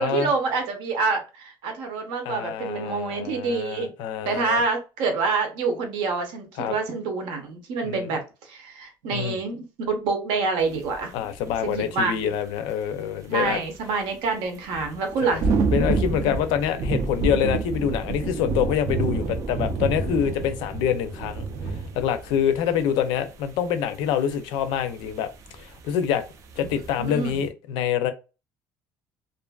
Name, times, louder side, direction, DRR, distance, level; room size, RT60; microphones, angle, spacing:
voice 1, 0.0-3.9 4.2-8.2 8.5-11.1 11.6-12.2 13.3-15.5 27.0-27.4, right 4 dB, 75° right, 0.8 m, -27 dB
voice 2, 2.2-4.6 6.6-6.7 7.8-8.1 9.1-9.4 11.1-13.6 15.2-15.4 15.7-21.4 21.9-26.2 26.6-28.1, left 9 dB, 75° left, 0.4 m, -26 dB
sound 1, 10.7-11.0 11.4-11.8 12.2-12.3 14.7-23.3 23.5-23.6 23.9-24.3 24.6-26.1 26.5-27.5, right 4 dB, 40° right, 0.3 m, -28 dB
2.5 x 2.4 x 2.3 m
cardioid pair, 170°, 8 cm